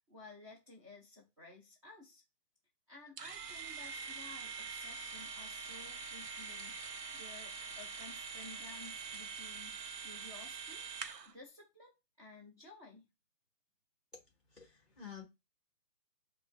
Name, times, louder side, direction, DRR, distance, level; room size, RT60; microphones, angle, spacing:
voice 1, 0.0-2.2 2.9-10.9 11.3-13.0, left 3 dB, 20° right, -5 dB, 0.9 m, -55 dB
sound 1, 3.2-11.3, right 5 dB, 85° right, 0.8 m, -44 dB
voice 2, 14.5-15.2, left 8 dB, ahead, 0 dB, 1.2 m, -50 dB
5.4 x 2.2 x 2.7 m, 0.23 s
hypercardioid pair, 165°, 48 cm